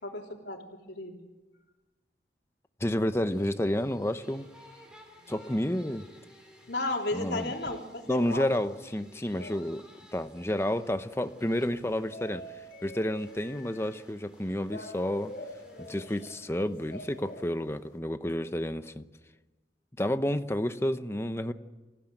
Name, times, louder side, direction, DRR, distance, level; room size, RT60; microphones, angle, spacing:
voice 1, 0.0-1.2 6.7-8.5 9.3-9.5, left 2 dB, 80° left, 0 dB, 3.4 m, -34 dB
voice 2, 2.8-4.5 5.3-6.1 7.1-7.5 8.1-9.8 10.1-12.5 12.8-15.3 15.8-19.0 20.0-21.5, left 1 dB, 15° left, 10 dB, 0.9 m, -30 dB
sound 1, 3.3-17.5, equal, 5° right, 3.8 m, -57 dB
sound 2, 11.0-18.0, left 1 dB, 55° left, 4.1 m, -47 dB
27.0 x 16.0 x 9.1 m, 1.2 s
head